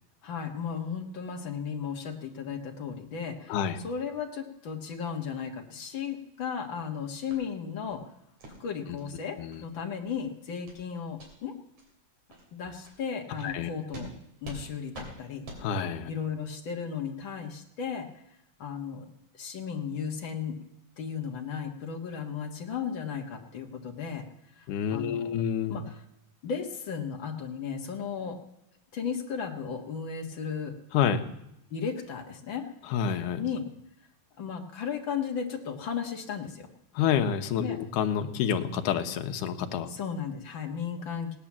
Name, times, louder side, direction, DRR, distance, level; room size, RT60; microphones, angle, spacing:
voice 1, 0.2-8.1 8.6-11.5 12.5-14.1 14.4-15.5 16.1-18.1 18.6-19.1 19.3-20.6 21.0-24.3 24.5-25.4 25.7-26.0 26.4-28.4 28.9-30.8 31.7-32.7 33.4-33.7 34.4-36.7 37.6-37.8 39.9-41.4, left 6 dB, 45° left, 3 dB, 1.8 m, -35 dB
sound 1, 7.3-7.4 7.8-8.0 8.4-8.6 9.0-9.1 9.5-9.6 10.0-10.2 10.7-10.8 11.1-11.3 11.8-11.9 12.3-12.4 12.8-13.0 13.4-13.5 13.9-14.1 14.4-14.6 14.9-15.1 15.4-15.6, right 1 dB, 55° right, 4.4 m, -44 dB
voice 2, 15.6-16.1 24.7-25.8 30.9-31.2 32.9-33.4 37.0-39.9, left 8 dB, 75° left, 6 dB, 2.4 m, -28 dB
17.5 x 10.0 x 7.3 m, 0.82 s
omnidirectional pair, 3.9 m